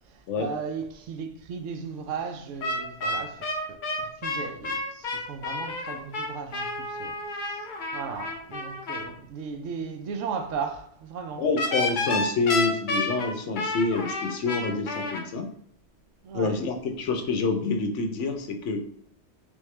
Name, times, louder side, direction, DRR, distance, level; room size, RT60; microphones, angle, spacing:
voice 1, 0.1-7.2 7.5-7.6 7.9-11.4 16.2-16.6, right 6 dB, 85° right, 1.0 m, -36 dB
sound 1, 2.6-9.1 11.6-15.2, left 2 dB, 50° left, 0.7 m, -30 dB
voice 2, 11.4-15.5 16.3-18.8, left 4 dB, 80° left, 1.0 m, -27 dB
3.5 x 3.4 x 3.2 m
omnidirectional pair, 1.2 m